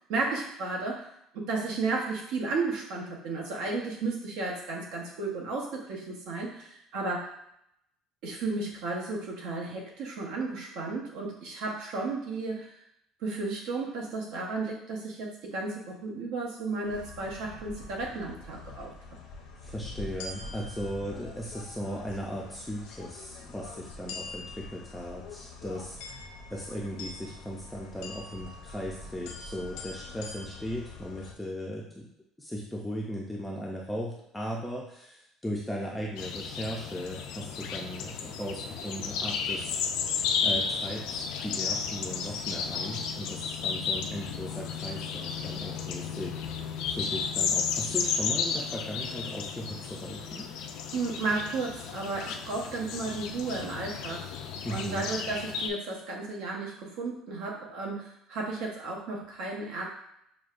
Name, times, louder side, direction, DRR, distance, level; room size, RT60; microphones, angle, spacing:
voice 1, 0.1-1.1 1.3-7.3 8.2-12.8 13.2-18.9 50.9-54.3 54.7-59.9, right 3 dB, 70° right, -1 dB, 1.0 m, -33 dB
sound 1, 16.8-31.3, left 3 dB, 85° left, 0.7 m, -44 dB
voice 2, 19.6-26.2 26.5-32.1 32.4-39.8 40.4-46.3 46.9-50.5 54.6-55.1, equal, 5° left, -3 dB, 0.4 m, -37 dB
sound 2, 36.2-55.7, left 6 dB, 70° left, 0.3 m, -33 dB
6.1 x 2.2 x 2.5 m, 0.76 s
cardioid pair, 155°, 0 cm